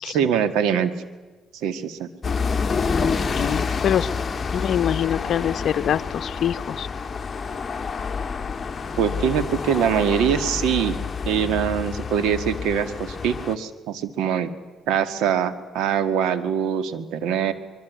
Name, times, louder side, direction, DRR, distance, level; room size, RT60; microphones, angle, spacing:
voice 1, 0.0-0.9 1.5-2.1 9.0-11.0 11.3-14.5 14.9-17.5, right 8 dB, 90° right, 12 dB, 1.8 m, -23 dB
sound 1, 2.2-13.5, left 5 dB, 35° left, 1.7 m, -28 dB
voice 2, 3.0-4.1 4.5-6.9, left 9 dB, 65° left, 11 dB, 0.9 m, -25 dB
24.0 x 23.5 x 9.4 m, 1.3 s
cardioid pair, 90°, 0 cm